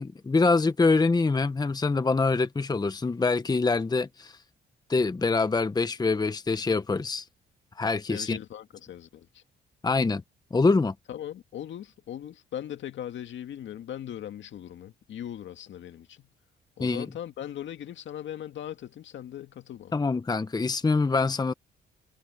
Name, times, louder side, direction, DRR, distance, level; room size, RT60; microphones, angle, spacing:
voice 1, 0.0-4.4 4.9-7.2 7.8-8.4 9.8-10.2 10.5-10.9 16.8-17.1 19.9-21.5, left 3 dB, 20° left, 1.0 m, -25 dB
voice 2, 8.1-9.4 11.1-16.3 16.8-20.0, left 10 dB, 70° left, 2.1 m, -39 dB
cardioid pair, 90°, 20 cm